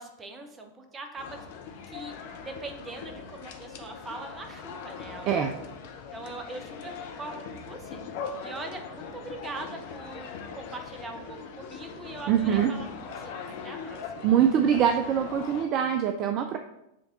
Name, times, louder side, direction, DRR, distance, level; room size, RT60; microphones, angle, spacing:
voice 1, 0.0-1.4 1.9-5.4 6.1-8.0 8.4-14.3, right 2 dB, 20° right, 4 dB, 0.9 m, -42 dB
sound 1, 1.2-15.6, left 5 dB, 50° left, 0.7 m, -41 dB
voice 2, 12.3-12.7 14.2-16.6, right 9 dB, 35° right, 6 dB, 0.4 m, -23 dB
7.6 x 3.5 x 3.9 m, 0.85 s
figure-of-eight pair, 90°, 0 cm